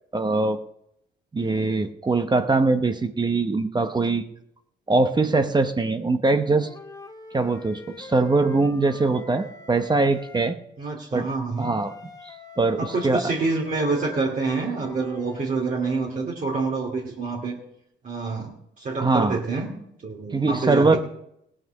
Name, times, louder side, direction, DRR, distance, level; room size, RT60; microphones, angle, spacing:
voice 1, 0.1-0.6 1.3-4.2 4.9-6.7 7.3-10.5 11.1-11.3 11.6-11.9 12.2-13.2 19.0-19.4 20.3-21.0, right 3 dB, 20° right, 8 dB, 0.9 m, -22 dB
Wind instrument woodwind instrument, 6.4-10.6 11.6-15.5, left 3 dB, 20° left, 1.7 m, -45 dB
voice 2, 10.8-11.7 12.8-17.5 18.0-18.5 18.8-19.7 20.0-21.0, right 3 dB, 40° right, -3 dB, 2.6 m, -27 dB
17.0 x 7.5 x 6.5 m, 0.76 s
cardioid pair, 90°, 20 cm